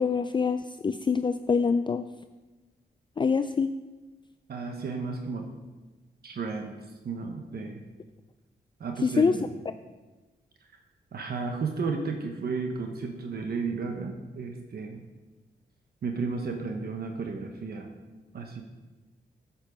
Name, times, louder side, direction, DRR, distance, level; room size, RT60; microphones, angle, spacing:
voice 1, 0.0-2.0 3.2-3.7 9.0-9.3, left 5 dB, 30° left, 9 dB, 0.4 m, -25 dB
voice 2, 4.5-5.5 6.2-6.7 7.0-7.8 8.8-9.5 11.1-15.0 16.0-17.9 18.3-18.6, right 4 dB, 65° right, 4 dB, 1.1 m, -33 dB
8.6 x 7.3 x 5.3 m, 1.2 s
cardioid pair, 80°, 17 cm